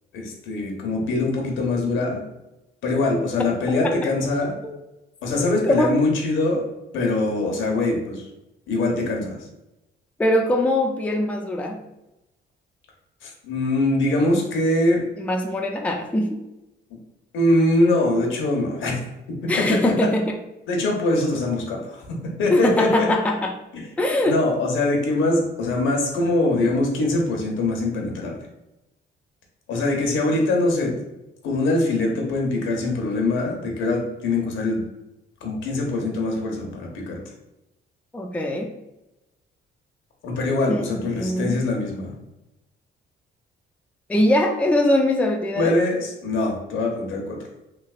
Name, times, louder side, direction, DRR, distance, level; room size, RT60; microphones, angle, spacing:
voice 1, 0.1-2.2 2.8-4.5 5.2-6.6 6.9-8.3 8.7-9.4 13.2-15.0 17.3-19.0 19.6-19.9 20.7-22.0 22.4-23.1 23.7-23.8 24.3-28.4 29.7-30.9 31.4-34.8 35.4-37.2 40.2-42.2 45.6-47.4, left 2 dB, 80° left, 0 dB, 0.9 m, -23 dB
voice 2, 5.4-5.9 10.2-11.8 15.2-16.4 19.5-20.4 22.5-23.5 24.0-24.4 38.1-38.7 40.7-41.6 44.1-45.8, left 1 dB, 5° left, 2 dB, 0.4 m, -22 dB
3.2 x 2.9 x 2.4 m, 0.93 s
cardioid pair, 90°, 20 cm